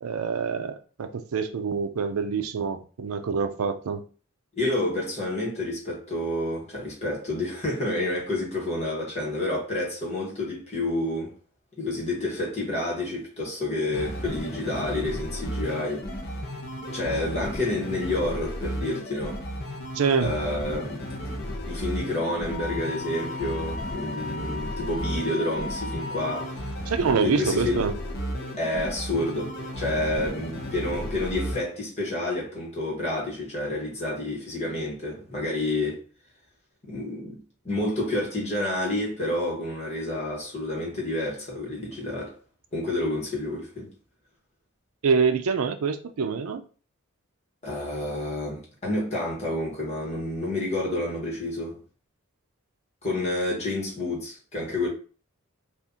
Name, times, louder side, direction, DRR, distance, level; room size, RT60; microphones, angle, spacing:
voice 1, 0.0-4.0 19.9-20.3 26.9-27.9 45.0-46.6, right 5 dB, 80° right, 0.5 m, -26 dB
voice 2, 4.5-11.3 11.8-16.1 16.9-19.4 20.2-21.0 21.6-26.7 27.2-27.8 28.6-36.0 36.9-37.4 37.6-42.3 42.7-43.9 47.6-51.8 53.0-54.9, left 1 dB, 30° left, 1.2 m, -29 dB
sound 1, 13.9-31.6, equal, 50° left, 0.7 m, -34 dB
Wind instrument woodwind instrument, 22.5-26.5, left 3 dB, 20° right, 0.6 m, -37 dB
2.7 x 2.5 x 3.7 m
head